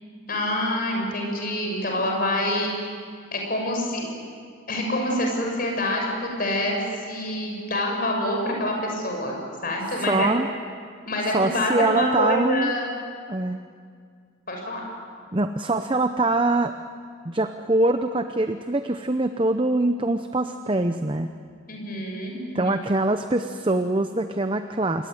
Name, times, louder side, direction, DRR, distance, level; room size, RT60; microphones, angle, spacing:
voice 1, 0.3-2.7 3.3-4.2 4.7-9.3 9.6-10.3 11.1-12.9 14.5-14.8 21.7-22.8, left 1 dB, 45° left, 1 dB, 6.5 m, -26 dB
voice 2, 10.1-10.5 11.3-12.7 13.3-13.6 15.3-16.7 17.2-21.3 22.5-25.1, right 2 dB, 25° right, 8 dB, 0.7 m, -23 dB
27.5 x 22.0 x 9.4 m, 2.1 s
head